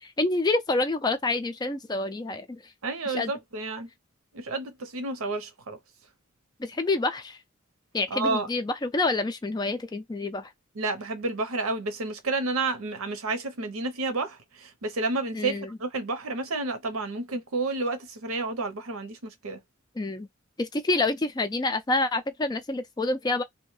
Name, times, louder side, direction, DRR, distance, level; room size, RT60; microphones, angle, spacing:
voice 1, 0.0-2.6 3.1-3.3 6.6-7.4 7.9-10.5 15.3-15.8 20.0-20.3 20.6-23.4, left 2 dB, 20° left, 0.3 m, -27 dB
voice 2, 2.8-3.9 4.3-5.8 8.1-8.5 10.8-19.6, right 3 dB, 85° right, 0.8 m, -30 dB
2.7 x 2.1 x 3.1 m
head